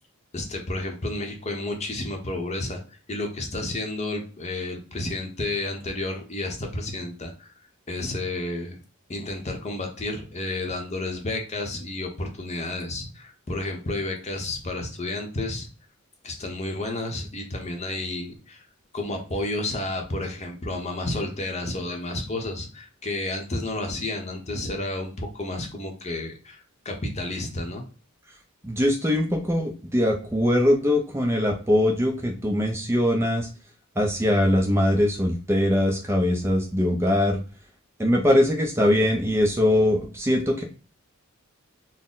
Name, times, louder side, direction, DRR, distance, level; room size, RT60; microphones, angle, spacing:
voice 1, 0.3-2.8 3.1-8.8 9.1-15.7 16.2-18.6 18.9-27.8, left 2 dB, 30° left, 3 dB, 0.8 m, -31 dB
voice 2, 28.6-33.5 34.0-37.4 38.0-40.6, left 1 dB, 10° right, 2 dB, 0.5 m, -22 dB
4.1 x 2.1 x 3.7 m, 0.37 s
head